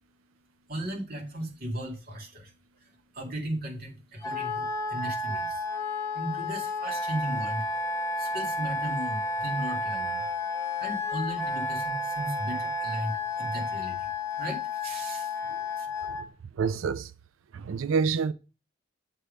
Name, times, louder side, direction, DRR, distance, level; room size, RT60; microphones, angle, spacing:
voice 1, 0.7-5.7 6.1-7.7 8.2-10.2 10.5-14.1 14.4-15.4 15.8-15.9, right 1 dB, 45° right, 2.1 m, -36 dB
Wind instrument woodwind instrument, 4.2-16.2, left 2 dB, 15° left, 0.9 m, -31 dB
voice 2, 16.6-17.1 17.5-18.3, right 5 dB, 85° right, 0.4 m, -27 dB
7.5 x 3.4 x 6.4 m
head